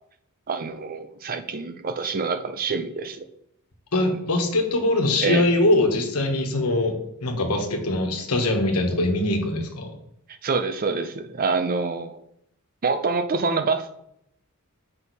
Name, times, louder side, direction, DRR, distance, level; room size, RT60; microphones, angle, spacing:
voice 1, 0.5-3.2 5.2-5.5 10.4-12.2 12.8-14.0, right 4 dB, 40° right, 9 dB, 0.5 m, -26 dB
voice 2, 3.9-9.9, left 2 dB, 85° left, 3 dB, 1.3 m, -22 dB
6.3 x 5.5 x 4.1 m, 0.75 s
head